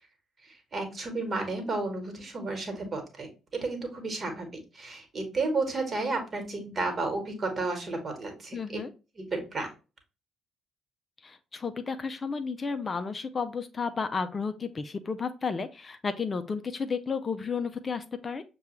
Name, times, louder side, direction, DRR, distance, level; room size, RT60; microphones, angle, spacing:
voice 1, 0.4-8.8 9.2-9.7, right 3 dB, 40° right, 5 dB, 1.3 m, -32 dB
voice 2, 8.5-8.9 11.2-18.4, left 5 dB, 35° left, 9 dB, 0.4 m, -32 dB
6.5 x 2.3 x 3.0 m, 0.32 s
figure-of-eight pair, 45°, 0 cm